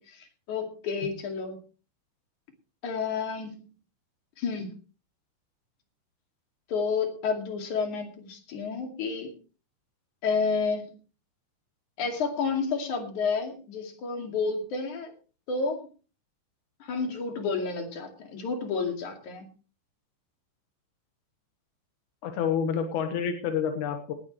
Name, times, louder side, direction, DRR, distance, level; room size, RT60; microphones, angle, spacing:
voice 1, 0.5-1.6 2.8-3.6 4.4-4.7 6.7-9.3 10.2-10.9 12.0-15.1 15.5-15.8 16.8-19.5, left 5 dB, 50° left, 4 dB, 3.4 m, -30 dB
voice 2, 22.2-24.1, left 7 dB, 65° left, 6 dB, 2.0 m, -28 dB
19.0 x 12.0 x 3.2 m, 0.36 s
omnidirectional pair, 5.2 m